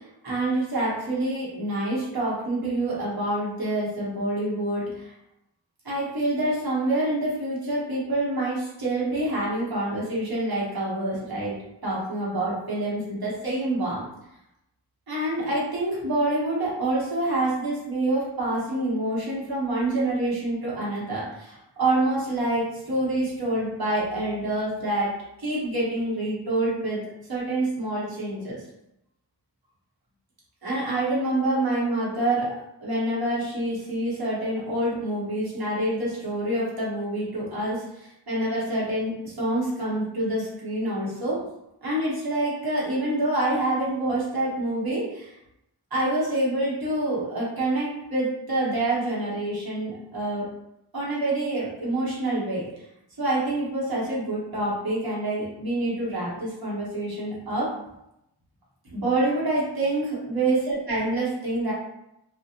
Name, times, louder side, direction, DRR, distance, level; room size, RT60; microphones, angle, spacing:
voice 1, 0.0-5.1 5.8-11.5 11.8-14.0 15.1-25.1 25.4-27.0 27.3-28.6 30.6-32.5 32.8-41.4 41.8-45.3 45.9-50.5 50.9-52.7 53.2-57.7 58.9-61.7, right 1 dB, 60° right, -7 dB, 1.1 m, -27 dB
2.4 x 2.3 x 2.8 m, 0.84 s
wide cardioid pair, 65°, 41 cm